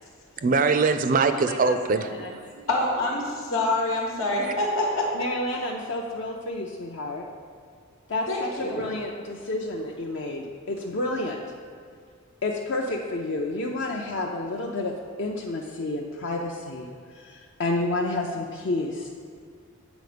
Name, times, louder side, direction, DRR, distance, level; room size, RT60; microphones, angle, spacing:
voice 1, 0.4-2.7, right 4 dB, 40° right, 9 dB, 0.3 m, -23 dB
voice 2, 1.3-2.3 5.1-7.2 8.1-11.4 12.4-19.1, left 2 dB, 60° left, -1 dB, 0.5 m, -30 dB
voice 3, 2.7-5.2 8.3-8.8, left 2 dB, 90° left, -3 dB, 1.2 m, -26 dB
8.1 x 4.2 x 5.0 m, 2.1 s
head